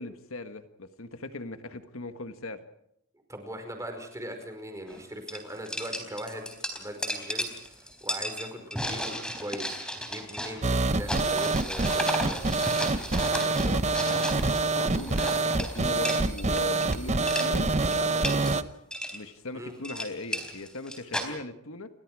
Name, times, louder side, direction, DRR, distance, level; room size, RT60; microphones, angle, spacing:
voice 1, 0.0-2.6 13.4-18.7 19.1-21.9, left 2 dB, 70° left, 9 dB, 1.5 m, -39 dB
voice 2, 3.3-6.5 6.7-7.5 8.0-12.5 19.5-19.7 21.1-21.3, right 1 dB, 15° right, 5 dB, 5.0 m, -40 dB
sound 1, 4.9-5.0 5.3-17.0 17.2-17.5 17.9-18.6 18.9-19.2 19.7-21.3, equal, 5° left, 3.9 m, -34 dB
sound 2, 10.6-18.6, right 3 dB, 30° right, 0.9 m, -26 dB
29.0 x 23.5 x 4.9 m, 0.77 s
head